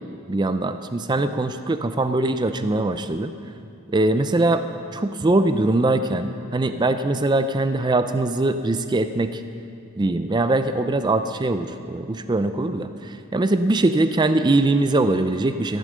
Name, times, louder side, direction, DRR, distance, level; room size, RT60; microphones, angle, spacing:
voice 1, 0.3-3.3 3.9-4.6 4.9-9.4 10.0-15.8, right 2 dB, 20° right, 9 dB, 0.4 m, -22 dB
16.0 x 9.0 x 6.6 m, 2.5 s
head